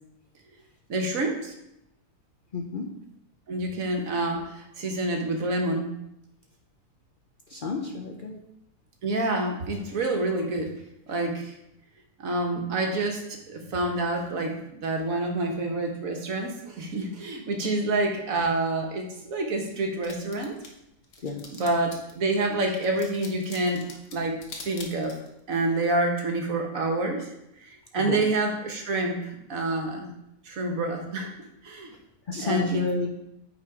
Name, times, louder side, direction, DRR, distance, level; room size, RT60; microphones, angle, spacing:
voice 1, 0.9-1.5 3.5-5.9 9.0-10.7 11.1-11.6 12.2-20.6 21.5-25.2 25.5-27.3 27.6-29.2 29.5-30.1 30.4-31.3 31.6-31.9 32.4-32.9, right 2 dB, 55° right, 3 dB, 1.4 m, -28 dB
voice 2, 2.5-2.9 7.5-8.4 21.2-21.4 28.0-28.2 32.3-33.1, left 4 dB, 70° left, 0 dB, 0.4 m, -30 dB
sound 1, 19.7-22.2 22.7-25.4, left 4 dB, 50° left, 1.3 m, -44 dB
8.9 x 4.2 x 4.8 m, 0.83 s
omnidirectional pair, 1.9 m